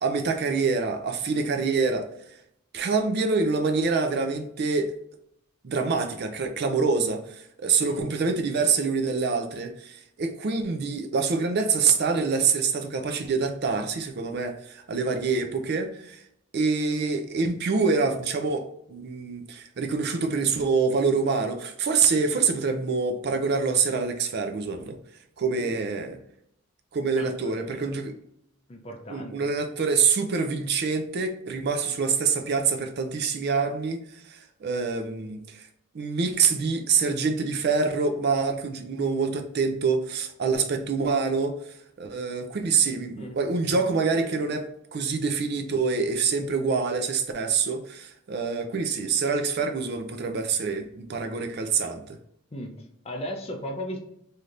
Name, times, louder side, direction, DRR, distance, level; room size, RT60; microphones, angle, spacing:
voice 1, 0.0-2.1 2.7-4.9 5.6-16.2 16.5-25.0 25.4-26.2 26.9-28.1 29.1-35.6 35.9-52.2, right 4 dB, 55° right, 5 dB, 0.4 m, -26 dB
voice 2, 27.2-27.9 28.7-29.5 43.2-43.4 52.5-54.0, equal, 30° left, 3 dB, 0.5 m, -37 dB
3.3 x 2.7 x 2.4 m, 0.73 s
head